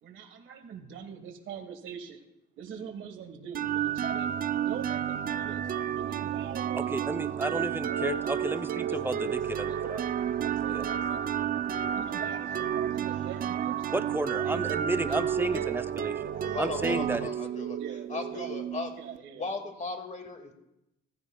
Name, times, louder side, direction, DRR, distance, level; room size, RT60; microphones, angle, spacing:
voice 1, 0.0-2.2 2.6-4.3 4.6-5.6 5.9-9.8 10.4-11.3 11.9-13.9 14.4-14.8 15.1-15.7 17.5-19.5, right 8 dB, 75° right, 6 dB, 1.6 m, -44 dB
sound 1, 3.5-19.2, right 9 dB, 45° right, 0.5 m, -31 dB
voice 2, 6.8-10.0 10.7-10.9 13.9-17.3, right 2 dB, 10° right, 9 dB, 0.7 m, -32 dB
voice 3, 16.4-17.8 18.1-18.9 19.3-20.5, left 4 dB, 35° left, 4 dB, 2.1 m, -36 dB
15.0 x 14.5 x 2.3 m, 0.89 s
cardioid pair, 90°, 20 cm